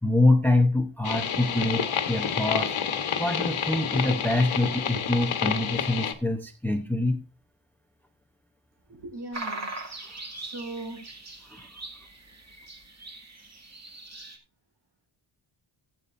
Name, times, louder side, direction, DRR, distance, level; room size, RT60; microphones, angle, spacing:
voice 1, 0.0-2.7 3.2-7.2 11.5-11.7, left 2 dB, 5° left, 6 dB, 0.8 m, -25 dB
sound 1, 1.0-6.1, left 7 dB, 70° left, 1.4 m, -29 dB
voice 2, 8.9-9.7 10.3-11.0, right 2 dB, 55° right, 1 dB, 6.3 m, -38 dB
sound 2, 9.3-14.4, right 2 dB, 30° right, 2.3 m, -40 dB
16.5 x 8.7 x 2.6 m, 0.29 s
wide cardioid pair, 155°, 49 cm